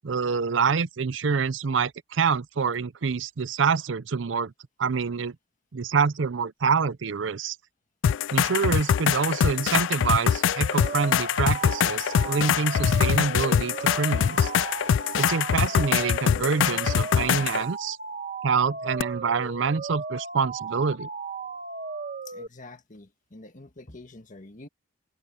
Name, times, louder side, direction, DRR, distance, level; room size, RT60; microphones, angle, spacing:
voice 1, 0.0-4.5 4.8-5.4 5.7-7.6 8.3-14.5 15.2-18.0 18.4-21.1, right 5 dB, 70° right, 0.6 m, -26 dB
sound 1, 8.0-17.6 19.0-19.1, left 8 dB, 70° left, 0.3 m, -24 dB
sound 2, 10.5-22.5, right 4 dB, 45° right, 1.7 m, -36 dB
voice 2, 22.2-24.7, left 2 dB, 45° left, 1.6 m, -46 dB
head